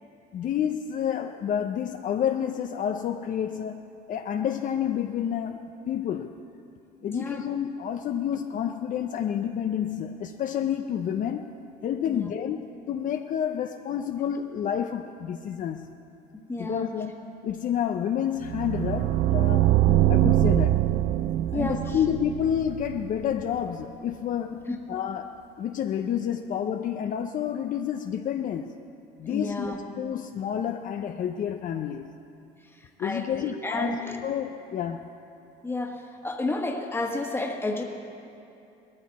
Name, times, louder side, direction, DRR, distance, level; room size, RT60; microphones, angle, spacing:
voice 1, 0.3-6.3 7.0-11.5 11.8-15.9 16.6-19.7 20.1-20.9 21.5-28.8 29.2-32.1 33.0-35.1, left 9 dB, 50° left, 6 dB, 0.6 m, -29 dB
voice 2, 7.0-7.5 12.0-12.3 16.5-16.9 19.9-20.0 21.5-22.0 24.7-24.8 29.2-29.8 32.6-34.3 35.6-37.8, left 2 dB, 15° left, 2 dB, 1.5 m, -31 dB
sound 1, 18.4-23.4, right 14 dB, 65° right, 0.4 m, -23 dB
19.5 x 14.0 x 4.2 m, 2.7 s
cardioid pair, 110°, 17 cm